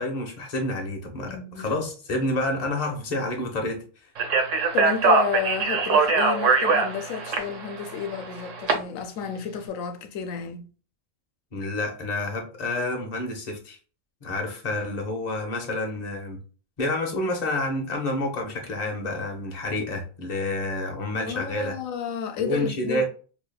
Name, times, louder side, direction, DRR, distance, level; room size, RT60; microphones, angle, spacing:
voice 1, 0.0-3.8 11.5-13.8 14.2-16.4 16.8-21.8 22.4-23.0, left 2 dB, 35° left, 0.9 m, -29 dB
voice 2, 1.3-1.7 4.7-10.7 21.2-23.0, left 7 dB, 85° left, 1.0 m, -31 dB
Speech, 4.2-8.7, right 4 dB, 70° right, 1.1 m, -22 dB
4.9 x 2.7 x 2.2 m
omnidirectional pair, 1.3 m